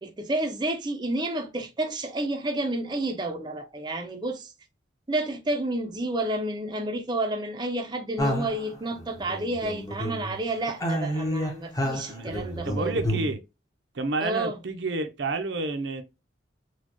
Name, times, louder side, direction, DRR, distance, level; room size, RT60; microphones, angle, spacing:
voice 1, 0.0-4.5 5.1-12.9 14.2-14.6, right 1 dB, 25° right, 0.5 m, -30 dB
sound 1, 8.2-10.4 10.7-13.3, equal, 20° left, 0.9 m, -30 dB
voice 2, 12.1-12.4 12.6-13.4 13.9-16.0, right 2 dB, 75° right, 0.6 m, -30 dB
4.2 x 2.3 x 2.9 m
head